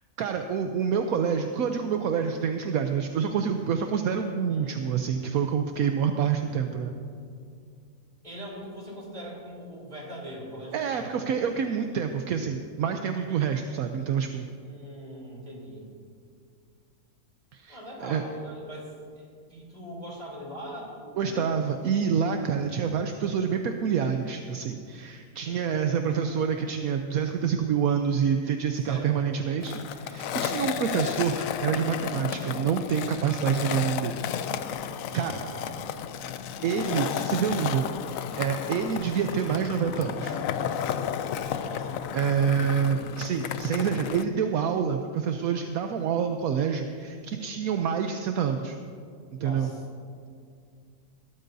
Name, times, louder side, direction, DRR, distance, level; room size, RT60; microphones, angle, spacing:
voice 1, 0.2-6.9 10.7-14.5 17.5-17.8 18.0-18.2 21.2-34.2 35.1-35.4 36.6-40.4 41.4-41.7 42.1-48.8 49.4-49.7, right 7 dB, 70° right, 5 dB, 1.1 m, -27 dB
voice 2, 4.5-4.8 8.2-11.2 14.6-15.9 17.7-21.6 25.4-25.6 25.9-26.7 28.9-29.6 35.4-35.7 41.6-42.8 49.4-49.8, equal, 25° right, -3 dB, 3.4 m, -42 dB
Skateboard, 29.6-44.2, left 9 dB, 70° left, 0.9 m, -33 dB
20.5 x 13.0 x 2.7 m, 2.3 s
omnidirectional pair, 1.7 m